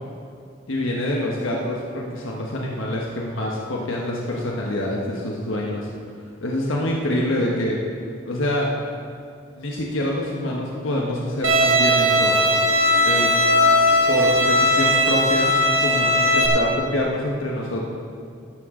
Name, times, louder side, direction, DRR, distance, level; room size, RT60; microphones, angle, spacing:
voice 1, 0.7-5.9 6.4-7.8 8.2-8.7 9.6-12.4 13.0-13.3 14.1-15.5 15.8-17.9, left 1 dB, 80° left, -2 dB, 1.3 m, -26 dB
Bowed string instrument, 11.4-16.5, equal, 85° right, 2.0 m, -18 dB
14.0 x 11.0 x 3.8 m, 2.3 s
head